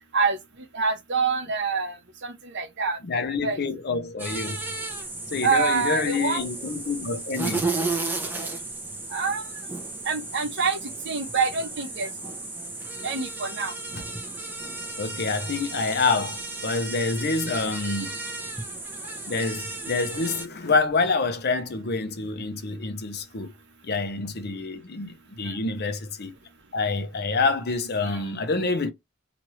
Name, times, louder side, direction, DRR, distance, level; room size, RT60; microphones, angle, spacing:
voice 1, 0.7-3.0 3.4-3.6 5.4-6.4 9.1-9.5 10.0-10.8 11.0-12.1 13.0-13.7 17.8-17.9 25.4-25.5 28.0-28.3, right 5 dB, 55° right, 0.8 m, -26 dB
voice 2, 3.0-4.6 5.3-7.7 15.0-18.1 19.3-23.5 23.8-26.3 26.7-28.9, left 4 dB, 50° left, 0.7 m, -27 dB
sound 1, 4.2-20.5, right 3 dB, 10° right, 0.6 m, -34 dB
3.0 x 2.5 x 3.0 m
head